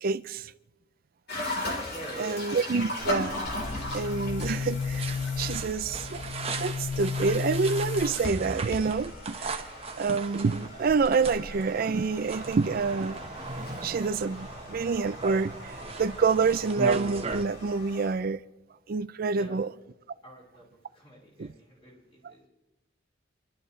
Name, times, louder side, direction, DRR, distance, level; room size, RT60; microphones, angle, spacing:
voice 1, 0.0-0.5 2.2-3.4 3.9-9.7 10.0-13.2 13.8-18.4 18.9-19.7 21.4-21.5 22.2-22.3, right 4 dB, 50° right, 0.4 m, -27 dB
sound 1, 1.3-18.1, left 1 dB, 60° left, 3.8 m, -39 dB
voice 2, 1.9-2.4 19.3-19.6 20.2-20.7 20.9-22.5, right 1 dB, 30° left, 6.9 m, -45 dB
sound 2, 3.0-17.4, right 3 dB, 30° right, 1.2 m, -39 dB
Boom, 3.4-9.2, left 5 dB, 85° left, 1.4 m, -33 dB
27.5 x 13.0 x 3.2 m
head